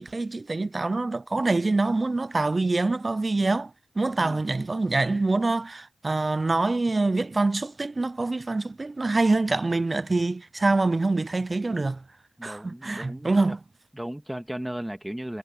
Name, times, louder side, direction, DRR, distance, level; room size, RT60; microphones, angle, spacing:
voice 1, 0.0-3.7 4.0-12.0 12.4-13.6, right 3 dB, 35° right, 0.4 m, -25 dB
voice 2, 12.4-13.6 13.9-15.4, right 1 dB, 5° right, 2.2 m, -36 dB
supercardioid pair, 45°, 0 cm